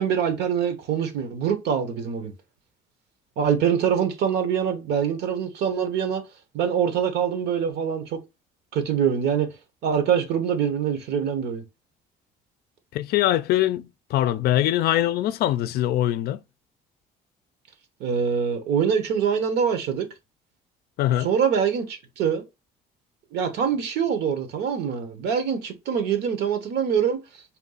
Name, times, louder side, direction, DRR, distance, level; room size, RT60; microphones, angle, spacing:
voice 1, 0.0-2.3 3.4-6.2 6.5-8.2 8.7-9.5 9.8-11.6 18.0-20.1 21.2-22.4 23.3-27.2, right 7 dB, 75° right, 1.1 m, -24 dB
voice 2, 12.9-16.4 21.0-21.3, left 13 dB, 70° left, 0.4 m, -23 dB
4.3 x 2.4 x 3.9 m
cardioid pair, 110°, 17 cm